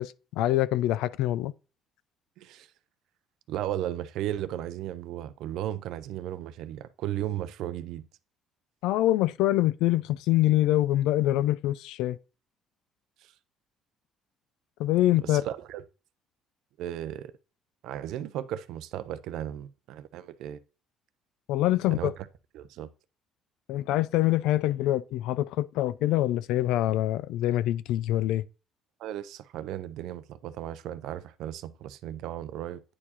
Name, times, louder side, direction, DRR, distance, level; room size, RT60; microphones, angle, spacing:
voice 1, 0.0-1.5 8.8-12.2 14.8-15.4 21.5-22.0 23.7-28.4, left 14 dB, 85° left, 0.3 m, -25 dB
voice 2, 2.4-2.7 3.5-8.0 13.2-13.3 15.2-15.8 16.8-17.3 17.8-20.6 21.9-22.3 22.5-22.9 29.0-32.8, right 12 dB, 80° right, 0.5 m, -35 dB
9.6 x 4.5 x 2.8 m
cardioid pair, 100°, 0 cm